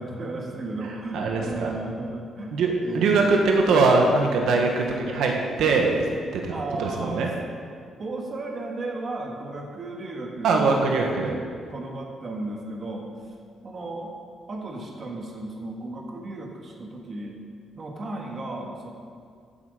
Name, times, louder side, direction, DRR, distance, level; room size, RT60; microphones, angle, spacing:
voice 1, 0.0-3.3 4.8-5.1 6.5-7.3 8.0-11.4 11.7-13.1 13.6-14.1 14.5-17.4 17.7-18.9, right 2 dB, 35° right, 0 dB, 1.8 m, -34 dB
voice 2, 1.1-1.7 2.5-5.3 5.6-6.1 6.3-6.5 6.8-7.3 10.4-11.4, right 3 dB, 85° right, 1 dB, 1.6 m, -21 dB
15.0 x 8.4 x 5.2 m, 2.1 s
cardioid pair, 150°, 0 cm